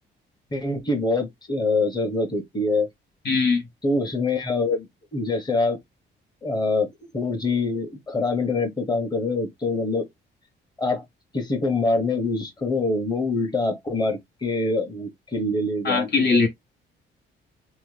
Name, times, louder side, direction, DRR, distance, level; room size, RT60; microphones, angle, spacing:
voice 1, 0.5-2.9 3.8-5.8 6.4-10.1 10.8-11.0 11.3-16.0, left 3 dB, 20° left, 1.1 m, -25 dB
voice 2, 3.2-3.7 15.8-16.5, left 4 dB, 55° left, 1.1 m, -20 dB
3.0 x 2.1 x 3.2 m
cardioid pair, 90°, 20 cm